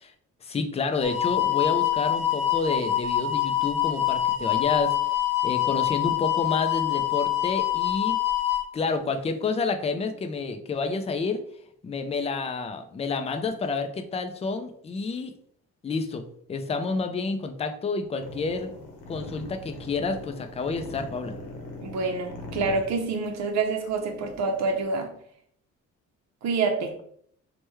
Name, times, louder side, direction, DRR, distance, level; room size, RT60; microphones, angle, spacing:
voice 1, 0.4-5.0 5.4-8.2 8.7-11.4 11.8-15.3 15.8-18.7 19.1-21.3, left 4 dB, 20° left, 7 dB, 0.4 m, -29 dB
sound 1, 1.0-8.6, left 12 dB, 10° right, 0.9 m, -25 dB
sound 2, 18.2-24.9, left 1 dB, 85° left, 0.8 m, -41 dB
voice 2, 21.8-25.1 26.4-26.9, right 4 dB, 65° right, 3 dB, 0.6 m, -27 dB
3.3 x 2.2 x 3.0 m, 0.64 s
cardioid pair, 90°, 30 cm